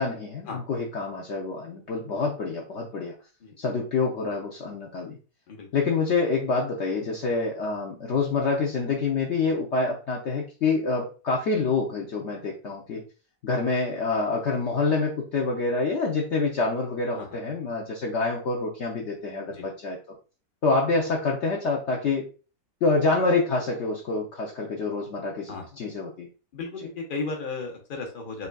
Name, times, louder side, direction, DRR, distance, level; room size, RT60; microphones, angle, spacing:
voice 1, 0.0-3.1 3.6-5.2 5.7-13.0 13.4-20.0 20.6-22.3 22.8-26.3, left 3 dB, 60° left, -1 dB, 0.9 m, -27 dB
voice 2, 26.5-28.5, left 4 dB, 40° left, 2 dB, 1.0 m, -34 dB
5.6 x 2.7 x 2.2 m, 0.35 s
omnidirectional pair, 1.6 m